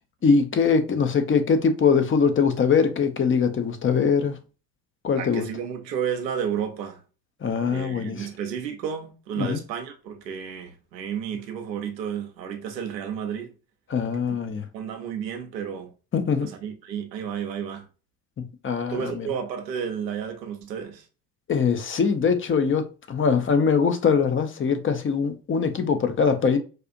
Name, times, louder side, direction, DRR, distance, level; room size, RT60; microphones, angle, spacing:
voice 1, 0.2-4.4 5.0-5.4 7.4-8.3 9.4-9.6 13.9-14.7 16.1-16.5 18.6-19.3 21.5-26.6, left 5 dB, 25° left, 0.7 m, -22 dB
voice 2, 5.2-7.0 7.7-13.5 14.3-14.4 14.7-15.9 16.4-17.8 18.9-21.0, right 8 dB, 85° right, 0.8 m, -32 dB
4.2 x 2.4 x 2.5 m
hypercardioid pair, 60°, 50 cm